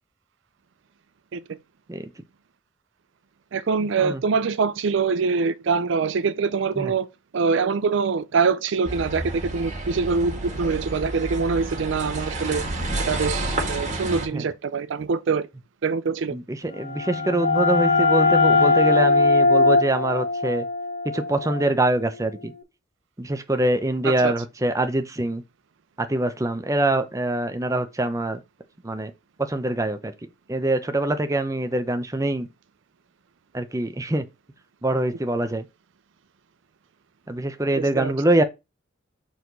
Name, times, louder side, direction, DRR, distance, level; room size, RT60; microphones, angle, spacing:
voice 1, 3.5-7.1 7.3-12.6 13.1-15.5 15.8-16.3 24.0-24.3 37.8-38.1, right 5 dB, 65° right, 0.4 m, -24 dB
sound 1, 8.8-14.3, right 2 dB, 40° right, 1.7 m, -30 dB
voice 2, 16.3-20.6 21.1-22.5 23.2-25.4 26.0-28.4 28.8-29.1 29.4-30.1 30.5-32.5 33.5-34.2 34.8-35.6 37.3-38.4, right 1 dB, 15° right, 0.7 m, -24 dB
sound 2, 16.7-22.3, left 3 dB, 60° left, 1.4 m, -21 dB
4.7 x 4.2 x 5.2 m
head